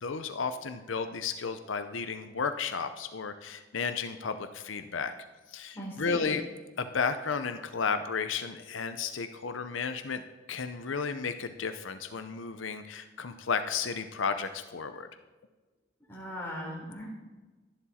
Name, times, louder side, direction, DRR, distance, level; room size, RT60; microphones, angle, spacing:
voice 1, 0.0-5.1 5.5-6.4 6.8-10.2 10.5-15.1, left 5 dB, 90° left, 9 dB, 0.7 m, -33 dB
voice 2, 5.7-6.3 16.1-17.1, equal, 10° left, -4 dB, 3.8 m, -38 dB
12.5 x 11.0 x 4.3 m, 1.2 s
head